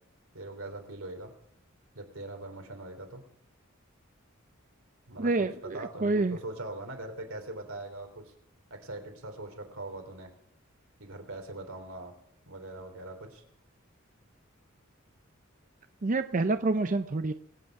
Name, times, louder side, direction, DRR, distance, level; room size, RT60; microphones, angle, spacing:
voice 1, 0.3-1.3 1.9-3.2 5.1-8.3 8.7-10.3 11.0-12.1 12.5-13.4, right 2 dB, 80° right, 4 dB, 3.4 m, -41 dB
voice 2, 5.2-6.4 16.0-17.3, right 3 dB, 40° right, 9 dB, 0.6 m, -28 dB
25.0 x 8.9 x 4.8 m, 0.69 s
head